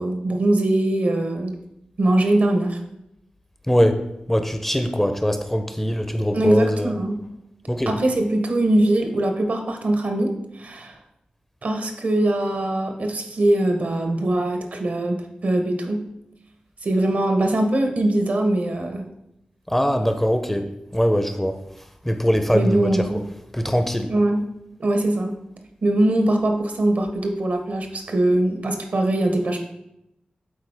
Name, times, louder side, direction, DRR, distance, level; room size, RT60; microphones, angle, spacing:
voice 1, 0.0-1.6 2.0-2.8 6.3-7.2 7.9-11.0 11.6-16.1 16.8-19.1 22.5-23.2 24.1-24.4 24.8-25.4 25.8-29.6, right 1 dB, 65° right, 5 dB, 0.9 m, -22 dB
voice 2, 3.7-4.0 4.3-6.9 7.7-8.0 19.7-21.6 22.0-23.2 23.5-24.1, equal, 10° left, 7 dB, 0.5 m, -22 dB
8.3 x 3.9 x 3.3 m, 0.82 s
wide cardioid pair, 95°, 3 cm